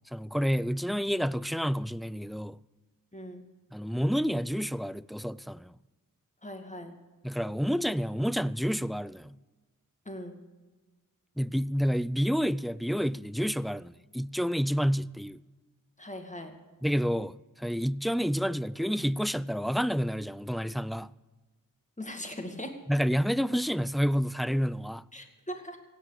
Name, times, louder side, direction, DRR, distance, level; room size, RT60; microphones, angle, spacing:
voice 1, 0.1-2.6 3.7-5.7 7.2-9.4 11.4-15.4 16.8-21.1 22.9-25.0, equal, ahead, 0.4 m, -29 dB
voice 2, 3.1-3.5 6.4-7.0 10.1-10.4 16.0-16.6 22.0-22.8 25.1-25.8, left 1 dB, 20° left, 2.3 m, -40 dB
16.5 x 8.8 x 8.2 m
wide cardioid pair, 50°, 33 cm